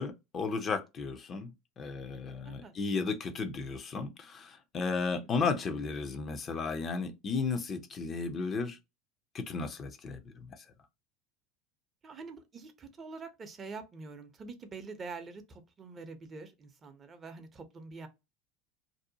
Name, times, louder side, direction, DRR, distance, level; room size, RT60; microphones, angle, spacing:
voice 1, 0.0-1.5 1.8-8.8 9.3-10.3, left 4 dB, 35° left, 0.5 m, -34 dB
voice 2, 12.0-18.1, right 4 dB, 30° right, 0.6 m, -45 dB
2.6 x 2.1 x 2.7 m
hypercardioid pair, 85°, 0 cm